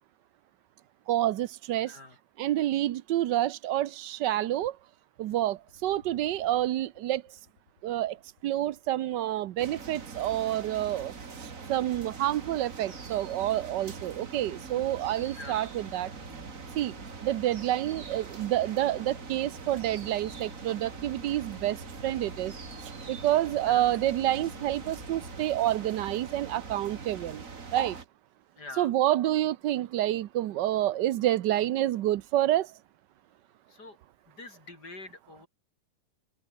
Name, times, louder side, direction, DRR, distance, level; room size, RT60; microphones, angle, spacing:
voice 1, 1.1-1.9 2.4-4.8 5.2-7.2 7.8-8.2 8.4-11.1 11.4-16.1 16.8-16.9 17.2-21.8 22.0-22.5 22.8-27.4 27.7-28.0 28.8-32.7, right 13 dB, 85° right, 1.4 m, -28 dB
voice 2, 1.8-2.2 15.3-15.7 23.6-23.9 28.6-28.9 33.7-34.0 34.3-35.5, left 3 dB, 70° left, 5.9 m, -45 dB
sound 1, 5.6-25.4, left 8 dB, 85° left, 2.2 m, -55 dB
sound 2, 9.6-28.0, right 5 dB, 50° right, 2.5 m, -42 dB
open air
omnidirectional pair, 1.9 m